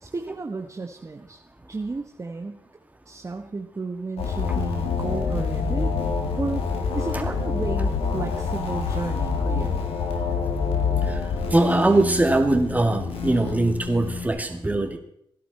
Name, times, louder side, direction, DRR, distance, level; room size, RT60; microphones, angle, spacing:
voice 1, 0.0-1.4 1.7-2.6 3.0-5.9 6.4-9.8, right 3 dB, 30° right, 4 dB, 1.2 m, -33 dB
sound 1, 4.2-14.3, left 5 dB, 90° left, 2.2 m, -27 dB
voice 2, 11.5-15.0, right 2 dB, 15° right, 4 dB, 2.3 m, -21 dB
17.5 x 11.0 x 4.3 m, 0.72 s
cardioid pair, 65°, 10 cm